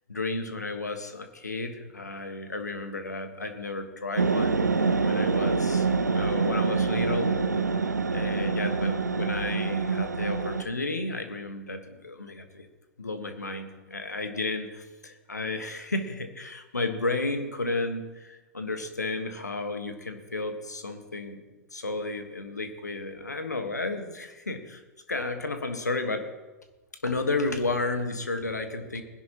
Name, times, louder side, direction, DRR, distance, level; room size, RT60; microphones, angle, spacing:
voice 1, 0.1-4.6 5.0-7.4 8.1-12.7 13.0-21.4 21.7-24.8 25.1-26.3 27.0-29.0, left 2 dB, 85° left, 7 dB, 1.4 m, -32 dB
sound 1, 4.2-10.6, right 4 dB, 85° right, 0.7 m, -26 dB
20.5 x 10.5 x 3.0 m, 1.1 s
figure-of-eight pair, 100°, 9 cm